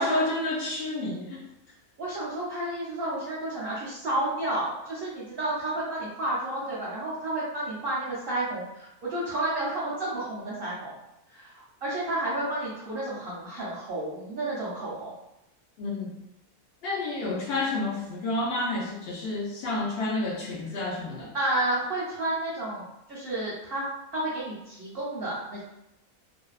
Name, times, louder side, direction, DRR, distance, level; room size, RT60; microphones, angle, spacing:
voice 1, 0.0-1.4 15.8-16.1 16.8-21.3, left 2 dB, 65° left, -4 dB, 0.6 m, -30 dB
voice 2, 2.0-10.9 11.3-15.1 21.3-25.6, right 1 dB, 55° right, -7 dB, 0.6 m, -31 dB
2.6 x 2.0 x 2.3 m, 0.88 s
omnidirectional pair, 1.5 m